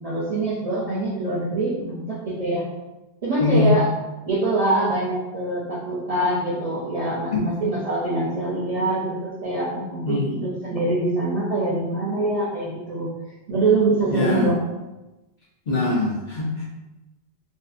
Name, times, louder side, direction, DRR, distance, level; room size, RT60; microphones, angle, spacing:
voice 1, 0.0-2.7 3.2-3.9 4.2-13.1 13.5-14.6, right 2 dB, 50° right, -7 dB, 0.4 m, -24 dB
voice 2, 3.4-3.7 7.3-7.5 10.0-10.4 14.1-14.5 15.7-16.6, left 3 dB, 50° left, -6 dB, 0.6 m, -22 dB
2.5 x 2.5 x 2.4 m, 1.0 s
omnidirectional pair, 1.2 m